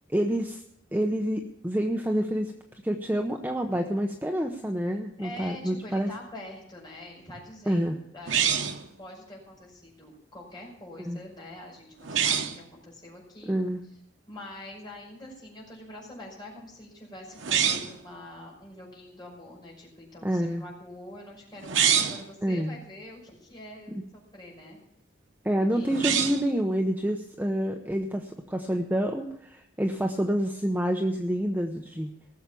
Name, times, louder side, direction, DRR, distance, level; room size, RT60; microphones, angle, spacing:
voice 1, 0.1-0.6 0.9-2.5 2.8-6.1 7.7-8.0 11.0-11.2 13.5-13.8 20.2-20.6 22.4-22.8 25.4-32.1, equal, 10° right, 3 dB, 0.8 m, -28 dB
voice 2, 5.2-8.7 9.0-13.5 14.3-24.8 25.6-26.0, left 1 dB, 25° left, -2 dB, 5.7 m, -45 dB
sound 1, 8.3-8.9 12.0-12.6 17.4-18.0 21.6-22.3 25.9-26.5, right 8 dB, 80° right, 1.1 m, -25 dB
18.5 x 7.3 x 7.0 m, 0.71 s
head